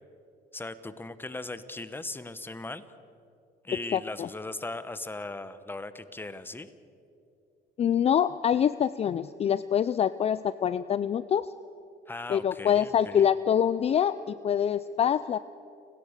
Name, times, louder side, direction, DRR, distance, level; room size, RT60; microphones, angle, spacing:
voice 1, 0.5-2.9 3.6-6.7 12.1-13.3, left 2 dB, 10° left, 13 dB, 1.1 m, -38 dB
voice 2, 3.9-4.3 7.8-11.5 12.3-15.4, left 9 dB, 40° left, 15 dB, 0.5 m, -25 dB
30.0 x 17.0 x 6.7 m, 2.7 s
cardioid pair, 110°, 17 cm